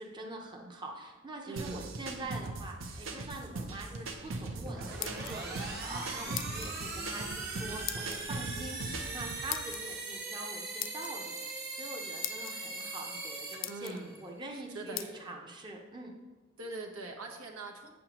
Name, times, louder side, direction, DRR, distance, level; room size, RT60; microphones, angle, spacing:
voice 1, 0.0-16.1, right 2 dB, 20° right, 0 dB, 0.7 m, -44 dB
voice 2, 1.5-1.9 13.7-14.1 14.5-15.2 16.6-17.9, right 3 dB, 85° right, 1 dB, 1.1 m, -43 dB
sound 1, 1.6-9.5, right 2 dB, 65° right, 0.7 m, -40 dB
sound 2, 4.6-14.3, right 3 dB, 50° right, 1.4 m, -40 dB
sound 3, 4.8-5.6 6.3-6.8 7.9-8.2 9.5-9.8 10.8-11.1 11.8-11.9 12.2-12.5 13.2-13.3 13.6-14.0 15.0-15.1, left 15 dB, 65° left, 0.3 m, -39 dB
8.5 x 6.5 x 3.0 m, 1.3 s
head